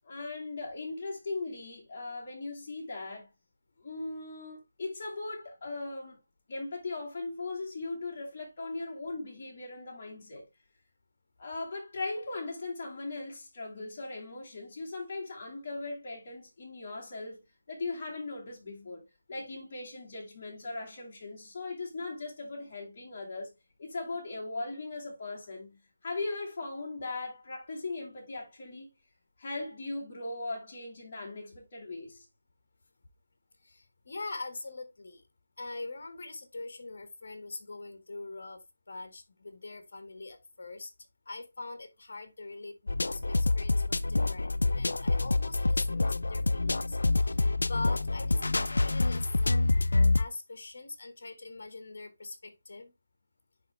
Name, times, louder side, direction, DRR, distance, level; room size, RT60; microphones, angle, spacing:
voice 1, 0.0-3.3 3.8-6.2 6.5-10.4 11.4-17.4 17.7-23.5 23.8-28.9 29.4-32.3, left 3 dB, 30° left, 2.4 m, -39 dB
voice 2, 33.6-35.2 35.6-40.9 41.2-49.9 50.2-52.9, left 3 dB, 50° left, 1.5 m, -43 dB
sound 1, 42.9-50.2, left 2 dB, 85° left, 0.4 m, -27 dB
10.0 x 3.5 x 3.2 m
figure-of-eight pair, 175°, 0 cm